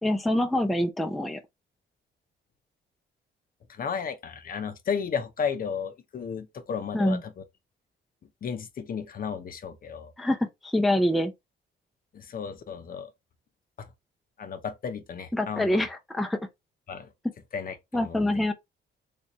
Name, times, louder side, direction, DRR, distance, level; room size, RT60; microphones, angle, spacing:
voice 1, 0.0-1.4 6.9-7.2 10.2-11.3 15.3-16.4 17.9-18.5, left 1 dB, ahead, 0.5 m, -25 dB
voice 2, 3.7-7.3 8.4-10.1 12.1-13.1 13.8-13.9 14.4-15.9 16.9-17.1 17.5-18.2, left 6 dB, 45° left, 0.7 m, -33 dB
3.4 x 2.7 x 2.9 m
cardioid pair, 90°, 20 cm